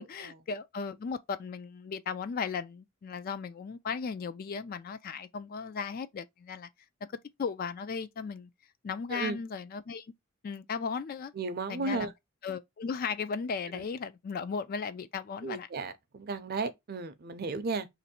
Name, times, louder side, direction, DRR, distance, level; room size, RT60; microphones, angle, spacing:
voice 1, 0.0-6.7 7.4-8.5 8.8-10.1 10.4-11.3 11.7-12.1 12.4-15.7, left 5 dB, 45° left, 0.3 m, -36 dB
voice 2, 11.3-12.1 15.4-17.9, right 3 dB, 45° right, 0.5 m, -34 dB
3.0 x 2.6 x 4.2 m
head